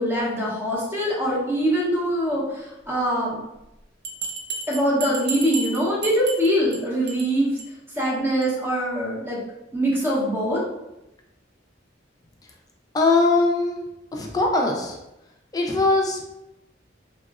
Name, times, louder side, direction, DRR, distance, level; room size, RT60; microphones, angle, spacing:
voice 1, 0.0-3.4 4.7-7.6 8.0-9.4 9.7-10.6, equal, 10° right, -5 dB, 0.7 m, -23 dB
Bell, 4.0-6.8 7.1-7.3 7.6-7.7 8.0-8.1 8.4-8.5, right 4 dB, 60° right, 0.4 m, -32 dB
voice 2, 12.9-13.8 14.1-15.0 15.5-16.3, left 3 dB, 20° left, 0 dB, 0.3 m, -21 dB
3.5 x 2.1 x 2.3 m, 0.92 s
head